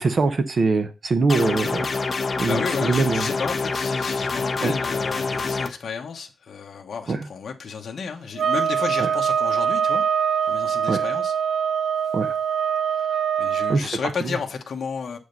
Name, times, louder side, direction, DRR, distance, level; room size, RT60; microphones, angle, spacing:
voice 1, 0.0-1.9 2.4-3.3 4.6-4.7 7.1-7.2 9.0-9.1 10.9-11.0 12.1-12.3 13.7-13.9 14.2-14.3, right 3 dB, 45° right, 0.8 m, -22 dB
sound 1, 1.3-5.7, left 4 dB, 35° left, 0.9 m, -26 dB
voice 2, 2.5-10.0 10.5-11.3 12.9-13.1 13.4-15.2, left 6 dB, 60° left, 1.1 m, -32 dB
sound 2, 8.4-13.8, right 8 dB, 85° right, 0.4 m, -23 dB
7.9 x 5.0 x 5.3 m
wide cardioid pair, 150°, 0 cm